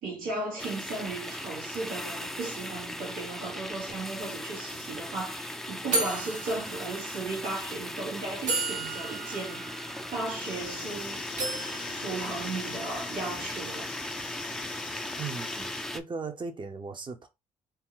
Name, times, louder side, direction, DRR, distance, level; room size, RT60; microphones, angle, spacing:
voice 1, 0.0-11.2 11.9-13.9, right 3 dB, 80° right, 1.4 m, -36 dB
sound 1, 0.6-16.0, left 1 dB, 5° left, 0.4 m, -38 dB
sound 2, 4.6-4.7 4.9-5.2 5.9-7.3 8.0-8.1 8.5-10.9 11.4-13.0, right 3 dB, 65° right, 1.1 m, -34 dB
sound 3, 10.4-15.9, left 8 dB, 70° left, 0.5 m, -44 dB
voice 2, 15.2-17.3, right 4 dB, 35° right, 0.8 m, -37 dB
2.8 x 2.2 x 3.8 m
supercardioid pair, 65°, 14 cm